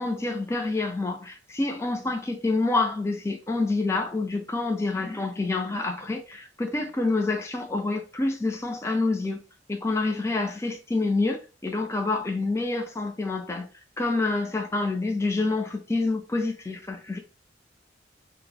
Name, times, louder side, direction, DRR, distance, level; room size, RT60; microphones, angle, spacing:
voice 1, 0.0-9.4 9.7-13.7 14.0-17.2, left 3 dB, 15° left, 0.4 m, -27 dB
2.6 x 2.0 x 4.0 m
head